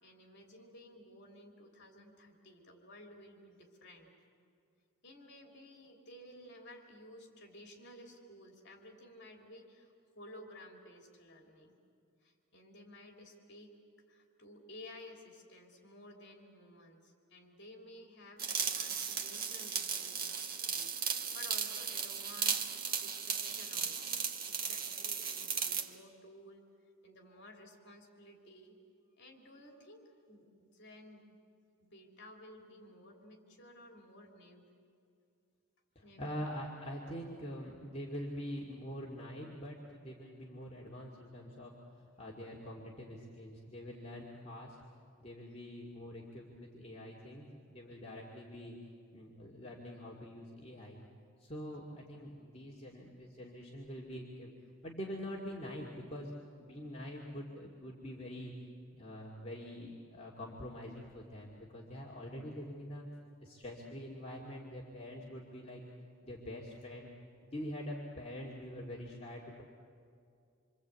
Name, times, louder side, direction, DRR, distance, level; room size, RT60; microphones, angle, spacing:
voice 1, 0.0-4.1 5.0-11.8 12.2-13.7 14.1-26.6 27.0-28.8 29.2-31.3 31.8-34.7 36.0-36.4, left 1 dB, 55° left, 2 dB, 3.1 m, -55 dB
sound 1, 18.4-25.9, right 6 dB, 45° right, 1.5 m, -36 dB
voice 2, 36.0-41.7 42.2-44.8 45.2-48.8 49.1-51.1 51.4-54.5 54.8-56.3 56.6-58.5 58.9-63.1 63.4-65.8 66.2-67.1 67.5-69.6, equal, 30° left, -4 dB, 2.4 m, -45 dB
27.0 x 25.0 x 8.3 m, 2.5 s
head